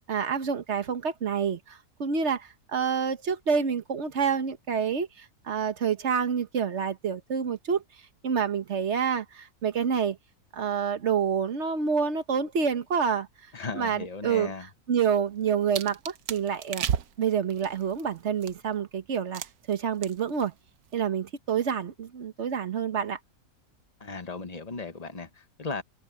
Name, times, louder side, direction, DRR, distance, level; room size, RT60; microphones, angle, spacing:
voice 1, 0.1-7.8 8.2-10.2 10.5-13.3 13.7-14.5 14.9-16.8 17.2-19.4 19.7-20.5 20.9-23.2, right 7 dB, 50° right, 1.4 m, -28 dB
voice 2, 13.5-14.7 24.0-25.8, left 4 dB, 30° left, 1.2 m, -36 dB
sound 1, 15.2-18.8 19.3-19.7 20.0-20.4 20.7-20.9, right 9 dB, 85° right, 1.3 m, -34 dB
omnidirectional pair, 1.5 m